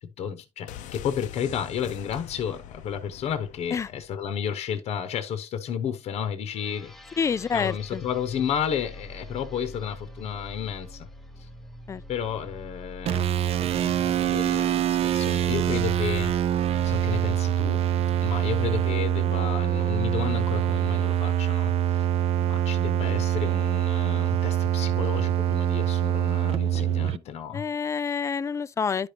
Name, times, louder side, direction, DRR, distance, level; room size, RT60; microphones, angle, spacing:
voice 1, 0.0-6.9 7.5-11.1 11.4-11.5 12.1-13.3 13.7-16.3 16.8-17.8 18.2-22.1 22.4-27.6, left 8 dB, 60° left, 0.9 m, -32 dB
sound 1, 0.7-4.5 4.7-4.8, left 9 dB, 85° left, 0.7 m, -43 dB
sound 2, 6.4-18.4, left 1 dB, 5° left, 0.8 m, -44 dB
voice 2, 7.2-8.0 11.9-12.0 27.5-29.1, left 6 dB, 25° left, 0.3 m, -27 dB
sound 3, 13.1-27.2, right 11 dB, 55° right, 0.5 m, -24 dB
11.0 x 5.1 x 2.8 m
cardioid pair, 145°, 13 cm